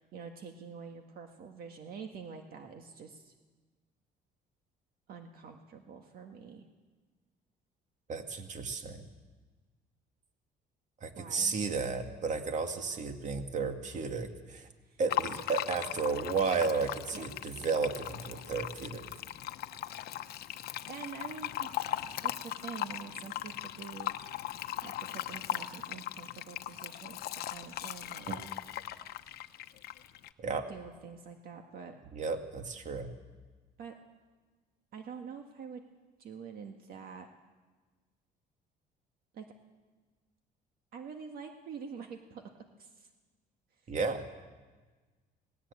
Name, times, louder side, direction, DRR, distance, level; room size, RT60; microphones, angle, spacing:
voice 1, 0.0-3.3 5.1-6.7 11.2-11.5 14.9-15.0 17.1-17.2 20.9-21.7 22.2-24.1 24.8-28.4 30.7-31.9 33.8-33.9 34.9-35.8 36.2-37.3 39.3-39.5 40.9-43.1, right 6 dB, 65° right, 4 dB, 1.7 m, -46 dB
voice 2, 8.1-9.0 11.0-14.7 15.0-19.0 28.3-28.4 30.4-30.7 32.1-33.1 43.9-44.2, right 4 dB, 45° right, 6 dB, 2.2 m, -33 dB
Fill (with liquid), 15.1-30.3, left 13 dB, 70° left, 0.9 m, -39 dB
19.0 x 17.5 x 8.4 m, 1.3 s
cardioid pair, 110°, 17 cm